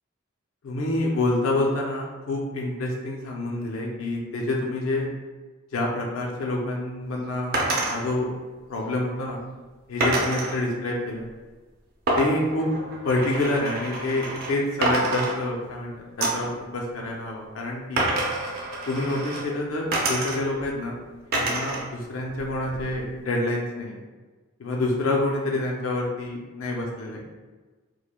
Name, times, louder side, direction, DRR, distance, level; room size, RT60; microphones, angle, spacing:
voice 1, 0.6-5.1 5.7-7.6 7.9-8.3 8.7-9.4 9.9-11.3 12.1-12.7 13.0-18.0 18.9-21.0 21.3-24.0 24.6-27.3, left 2 dB, 80° left, -1 dB, 0.4 m, -27 dB
sound 1, 7.5-8.0 10.0-10.6 12.1-14.5 14.8-15.8 16.2-16.5 18.0-19.4 19.9-20.7 21.3-21.9 22.2-23.0, right 2 dB, 45° right, 0.5 m, -27 dB
3.0 x 2.1 x 2.2 m, 1.3 s
head